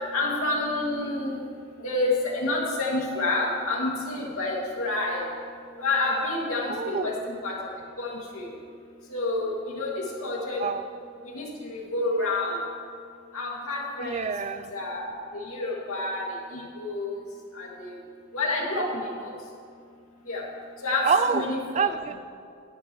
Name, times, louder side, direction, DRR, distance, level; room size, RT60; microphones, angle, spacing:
voice 1, 0.1-1.4 1.8-5.2 5.8-7.5 8.0-8.5 9.1-10.7 11.2-12.6 13.3-14.2 14.7-15.1 15.4-16.2 16.5-17.2 17.6-17.9 18.3-18.8 19.2-19.3 20.3-20.4 20.8-21.9, left 2 dB, 75° left, -3 dB, 2.4 m, -28 dB
voice 2, 6.7-7.2 10.6-10.9 14.0-14.7 18.8-18.9 21.0-21.5 21.7-22.2, right 5 dB, 30° right, 12 dB, 0.3 m, -27 dB
16.0 x 10.0 x 3.1 m, 2.3 s
head